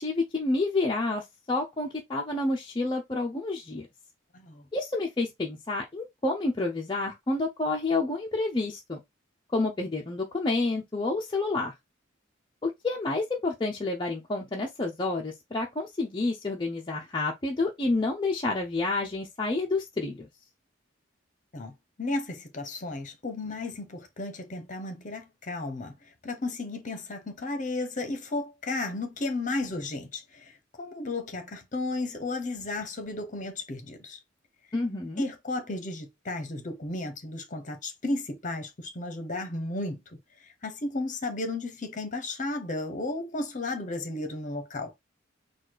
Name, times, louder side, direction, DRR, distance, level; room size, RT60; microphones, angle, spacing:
voice 1, 0.0-3.9 4.7-9.0 9.5-11.7 12.6-20.3 34.7-35.2, left 2 dB, 25° left, 0.5 m, -29 dB
voice 2, 22.0-25.9 26.2-30.5 30.8-34.2 35.2-40.0 40.6-44.9, left 2 dB, 40° left, 1.0 m, -34 dB
4.1 x 2.3 x 4.7 m
head